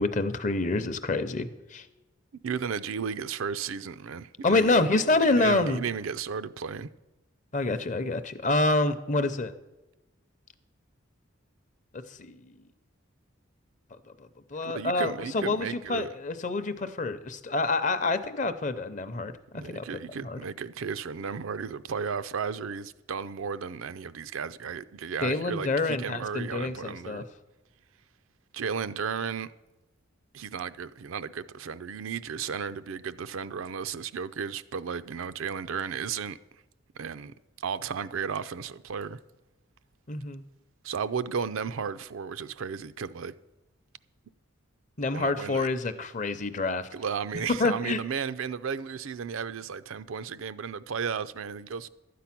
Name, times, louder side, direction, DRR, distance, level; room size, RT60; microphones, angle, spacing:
voice 1, 0.0-1.9 4.4-5.8 7.5-9.5 11.9-12.4 14.5-20.4 25.2-27.2 40.1-40.4 45.0-46.9 47.6-48.0, left 2 dB, 35° left, 0.6 m, -27 dB
voice 2, 2.4-6.9 14.6-16.1 19.5-27.2 28.5-29.5 30.3-36.4 37.0-37.3 37.6-39.2 40.8-43.3 45.1-45.7 46.9-51.9, right 6 dB, 80° right, 0.5 m, -34 dB
12.5 x 8.4 x 5.9 m
head